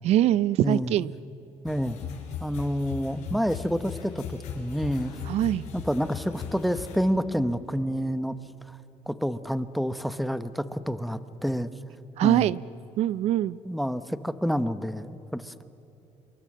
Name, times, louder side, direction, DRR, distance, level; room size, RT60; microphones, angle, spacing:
voice 1, 0.0-1.1 5.3-5.7 12.2-12.6 13.0-13.6, right 12 dB, 70° right, 18 dB, 0.5 m, -23 dB
voice 2, 0.6-0.9 1.6-2.0 2.4-5.1 5.7-8.4 8.7-8.8 9.1-11.7 12.2-12.5 13.6-15.6, equal, ahead, 12 dB, 0.9 m, -28 dB
sound 1, 1.7-7.0, left 7 dB, 80° left, 4.7 m, -38 dB
27.0 x 23.0 x 7.5 m, 3.0 s
cardioid pair, 135°, 12 cm